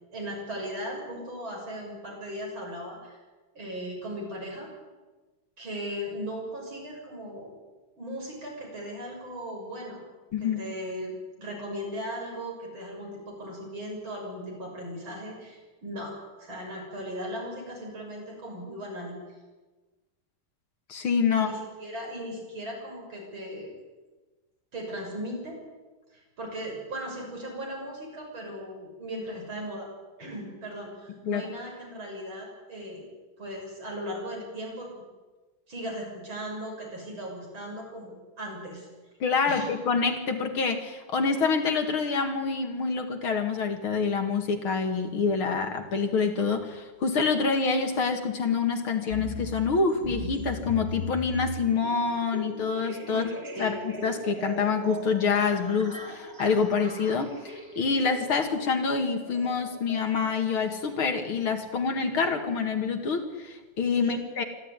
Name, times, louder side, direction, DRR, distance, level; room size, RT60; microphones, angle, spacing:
voice 1, 0.1-3.2 3.5-4.7 5.6-7.5 8.0-10.1 10.4-19.2 21.3-23.7 24.7-25.6 26.1-29.9 30.2-33.1 33.4-34.9 35.7-38.9 39.5-39.7 53.1-53.7 64.0-64.2, equal, 65° right, 0 dB, 7.5 m, -37 dB
voice 2, 20.9-21.5 31.2-31.5 39.2-53.2 53.6-64.4, left 5 dB, 70° left, 5 dB, 2.9 m, -26 dB
sound 1, 49.1-60.9, right 2 dB, 25° right, 3.7 m, -39 dB
25.5 x 13.0 x 9.8 m, 1.3 s
omnidirectional pair, 2.4 m